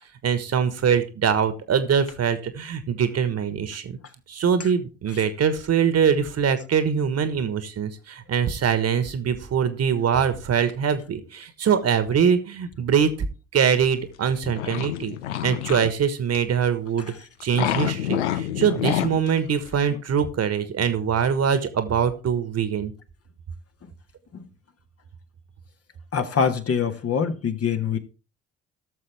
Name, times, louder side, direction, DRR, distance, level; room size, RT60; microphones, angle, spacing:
voice 1, 0.2-4.0 4.3-13.1 13.5-15.1 15.4-17.1 17.4-22.9, right 7 dB, 45° right, 1.4 m, -23 dB
sound 1, 13.9-15.9 16.3-16.6 17.4-19.3 19.7-19.8, left 12 dB, 80° left, 0.6 m, -28 dB
voice 2, 26.1-28.0, left 6 dB, 45° left, 1.4 m, -24 dB
17.0 x 6.7 x 3.4 m
figure-of-eight pair, 45°, 34 cm